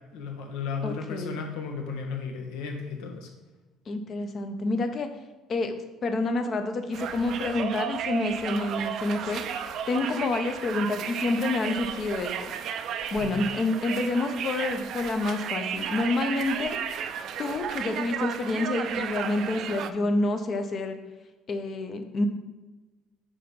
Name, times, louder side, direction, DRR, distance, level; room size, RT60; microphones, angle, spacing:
voice 1, 0.1-3.3 13.2-13.4, left 5 dB, 80° left, 2 dB, 1.3 m, -34 dB
voice 2, 0.8-1.4 3.9-5.1 5.5-5.7 6.0-9.4 9.9-12.3 13.1-16.8 17.4-21.0 21.5-22.3, left 2 dB, 30° left, 7 dB, 0.6 m, -28 dB
Conversation, 6.9-19.9, right 8 dB, 45° right, 0.4 m, -33 dB
6.2 x 3.9 x 5.2 m, 1.2 s
cardioid pair, 160°, 0 cm